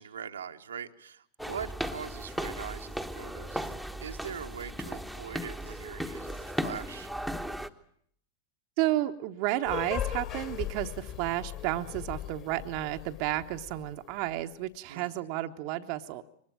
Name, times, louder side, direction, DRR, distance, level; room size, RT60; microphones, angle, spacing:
voice 1, 0.0-7.1 14.9-15.2, right 7 dB, 70° right, 5 dB, 1.1 m, -42 dB
sound 1, 1.4-7.7, equal, ahead, 1.2 m, -36 dB
voice 2, 8.8-16.2, right 15 dB, 45° right, 7 dB, 1.0 m, -32 dB
sound 2, 9.6-14.3, left 10 dB, 35° left, 2.8 m, -38 dB
24.5 x 20.5 x 9.2 m, 0.65 s
figure-of-eight pair, 90°, 0 cm